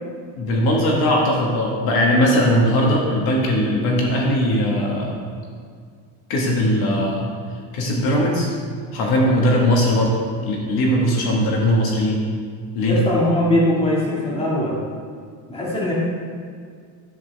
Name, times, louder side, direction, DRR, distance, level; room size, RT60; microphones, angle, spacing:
voice 1, 0.4-5.2 6.3-7.3 7.7-8.5 8.9-10.1 10.4-12.2 12.7-13.0, equal, 55° left, -2 dB, 1.9 m, -19 dB
voice 2, 12.9-14.8 15.5-15.9, left 1 dB, 15° left, -5 dB, 2.1 m, -21 dB
11.0 x 8.7 x 3.5 m, 2.1 s
cardioid pair, 155°, 43 cm